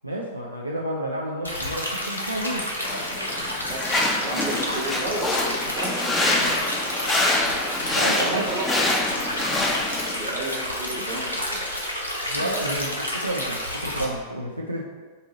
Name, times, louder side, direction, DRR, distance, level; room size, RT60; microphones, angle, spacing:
voice 1, 0.0-2.7 7.8-8.5 12.2-14.9, right 1 dB, 85° right, -3 dB, 0.3 m, -30 dB
Stream, 1.4-14.0, left 1 dB, 90° left, 0.5 m, -30 dB
sound 1, 2.8-10.1, left 2 dB, 15° left, 0.4 m, -26 dB
voice 2, 3.7-6.8 7.9-8.9 10.1-11.8 12.3-12.5, right 1 dB, 45° right, -3 dB, 1.0 m, -33 dB
2.7 x 2.7 x 3.9 m, 1.4 s
figure-of-eight pair, 90°, 0 cm